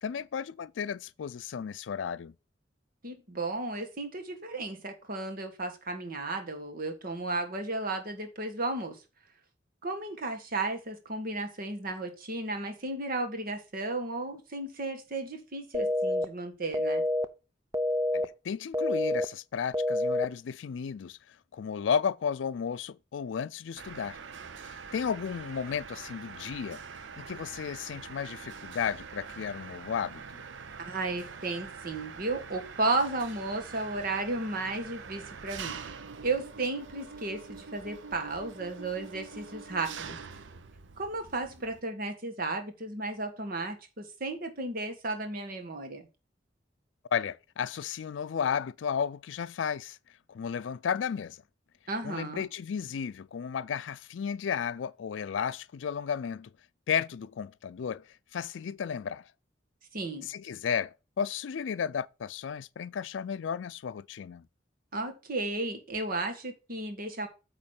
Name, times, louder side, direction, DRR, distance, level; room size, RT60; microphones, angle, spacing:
voice 1, 0.0-2.3 18.1-24.2 24.6-26.8 27.2-30.4 47.1-50.0 50.3-51.4 52.0-56.5 56.9-58.1 58.3-59.3 60.2-64.4, left 7 dB, 90° left, 0.4 m, -33 dB
voice 2, 3.0-9.0 9.8-17.0 30.8-35.9 36.2-40.2 41.0-46.1 51.9-52.5 59.9-60.3 64.9-67.3, right 2 dB, 55° right, 1.5 m, -34 dB
sound 1, 15.7-16.2 16.7-17.2 17.7-18.2 18.7-19.2 19.7-20.2, left 1 dB, 15° right, 0.5 m, -27 dB
Mechanisms, 23.8-41.8, right 5 dB, 90° right, 0.6 m, -44 dB
8.6 x 3.1 x 6.4 m
head